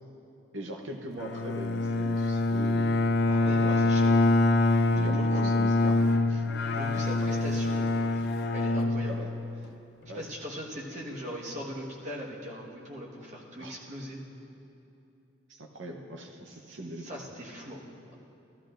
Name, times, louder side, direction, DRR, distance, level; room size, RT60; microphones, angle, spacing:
voice 1, 0.5-3.1 3.4-3.9 4.9-6.4 9.1-9.3 10.1-10.3 13.6-13.8 15.5-17.1, right 1 dB, 65° right, 2 dB, 0.8 m, -40 dB
Bowed string instrument, 1.2-9.6, left 2 dB, 50° left, 0.4 m, -25 dB
voice 2, 3.3-4.1 5.0-5.5 6.7-9.3 10.1-14.2 16.7-17.8, equal, 35° right, -3 dB, 1.4 m, -40 dB
14.5 x 13.5 x 2.6 m, 2.8 s
head